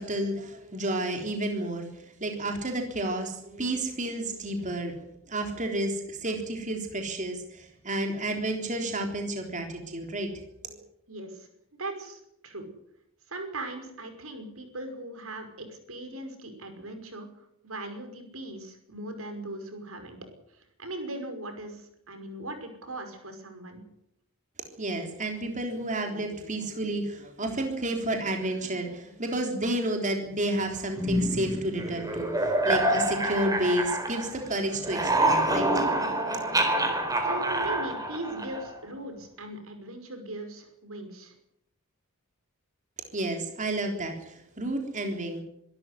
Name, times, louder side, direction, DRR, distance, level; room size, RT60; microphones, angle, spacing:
voice 1, 0.0-5.0 5.3-10.8 24.8-35.8 43.1-45.4, right 1 dB, 35° right, 3 dB, 3.6 m, -31 dB
voice 2, 11.1-11.5 11.8-12.7 13.3-20.2 20.5-23.8 37.2-41.3, right 1 dB, 85° right, 6 dB, 5.6 m, -39 dB
sound 1, 31.0-34.5 34.7-38.8, right 1 dB, 20° right, 4.3 m, -27 dB
24.5 x 13.0 x 9.8 m, 0.76 s
head